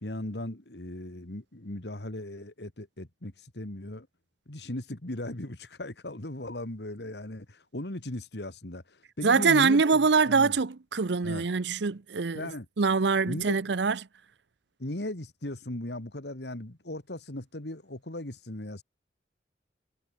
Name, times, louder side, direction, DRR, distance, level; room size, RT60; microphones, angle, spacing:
voice 1, 0.0-4.1 4.5-9.8 10.3-10.5 11.2-11.4 12.3-12.7 13.3-13.6 14.8-18.8, left 1 dB, 70° left, 2.4 m, -37 dB
voice 2, 9.2-12.5 12.8-14.0, right 4 dB, 80° right, 0.7 m, -24 dB
head